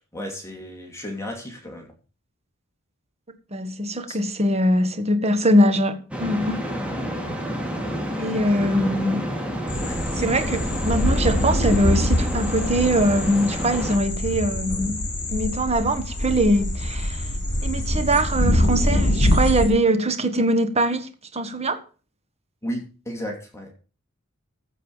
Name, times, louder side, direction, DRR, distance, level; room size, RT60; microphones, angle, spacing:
voice 1, 0.1-1.9 4.1-4.2 6.6-7.0 8.4-9.1 9.8-10.0 22.6-23.8, equal, 15° left, 3.0 m, -34 dB
voice 2, 3.5-6.6 8.2-9.2 10.2-15.0 15.3-17.3 17.6-21.8, right 1 dB, 30° right, 1.5 m, -22 dB
sound 1, 6.1-14.0, equal, 5° right, 2.7 m, -29 dB
sound 2, 9.7-19.7, left 1 dB, 40° left, 5.1 m, -24 dB
15.0 x 5.4 x 7.3 m
head